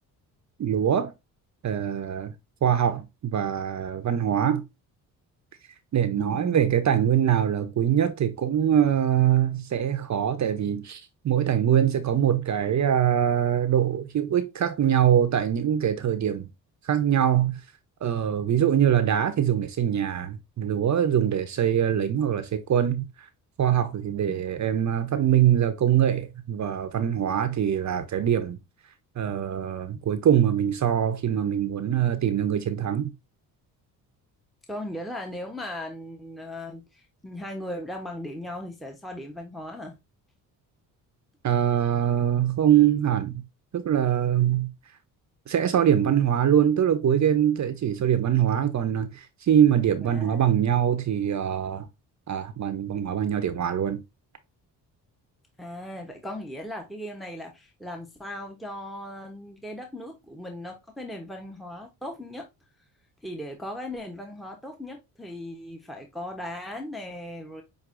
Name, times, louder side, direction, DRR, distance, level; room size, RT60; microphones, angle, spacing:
voice 1, 0.6-1.1 1.6-2.3 2.6-4.6 5.9-16.5 16.8-17.6 18.0-23.3 23.6-28.6 29.2-33.1 41.4-43.4 43.7-44.7 45.5-51.9 52.3-54.0, right 9 dB, 45° right, 0.7 m, -23 dB
voice 2, 6.2-6.6 24.3-24.4 34.7-40.0 50.0-50.5 55.6-62.5 63.2-67.6, left 1 dB, ahead, 0.9 m, -38 dB
6.0 x 2.6 x 2.5 m
supercardioid pair, 70°, 41 cm